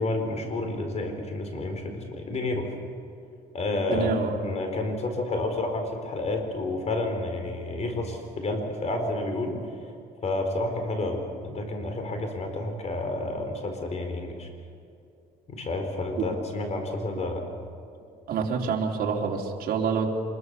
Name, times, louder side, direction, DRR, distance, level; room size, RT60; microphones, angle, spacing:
voice 1, 0.0-2.7 3.5-4.1 4.4-9.6 10.2-14.5 15.5-17.4, left 2 dB, 40° left, 5 dB, 4.7 m, -30 dB
voice 2, 3.9-4.3 16.2-16.3 18.3-20.1, right 5 dB, 60° right, 0 dB, 3.6 m, -27 dB
25.5 x 22.0 x 7.0 m, 2.5 s
cardioid pair, 110°, 17 cm